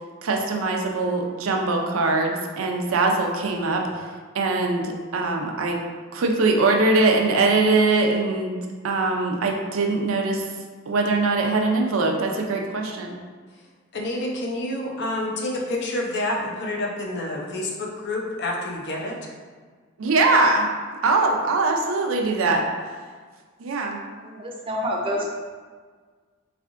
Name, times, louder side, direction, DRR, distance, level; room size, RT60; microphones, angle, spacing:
voice 1, 0.2-3.8 4.3-5.8 6.1-10.5 10.9-13.2 20.0-20.7 21.0-22.6 23.6-24.0, right 3 dB, 85° right, 1 dB, 0.5 m, -22 dB
voice 2, 13.9-19.2, left 1 dB, 55° left, 0 dB, 0.6 m, -28 dB
voice 3, 24.2-25.3, equal, 25° right, -1 dB, 0.5 m, -28 dB
3.5 x 3.3 x 2.5 m, 1.5 s
head